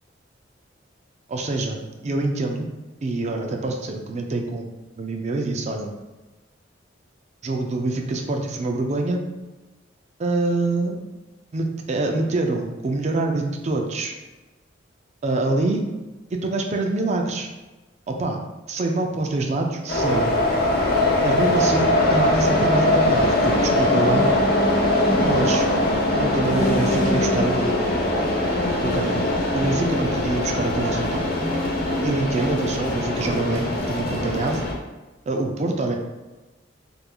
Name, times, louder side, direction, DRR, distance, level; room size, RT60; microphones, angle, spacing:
voice 1, 1.3-2.7 3.0-4.7 5.0-5.9 7.4-9.2 10.2-11.0 11.5-14.1 15.2-15.8 16.3-17.5 18.1-18.4 18.7-20.3 21.2-24.3 25.2-25.7 26.1-27.8 28.8-31.3 32.0-34.6 35.3-35.9, right 2 dB, 35° right, 2 dB, 0.4 m, -25 dB
sound 1, 19.9-34.7, left 1 dB, 60° left, 0.7 m, -21 dB
4.2 x 2.6 x 2.3 m, 1.1 s
head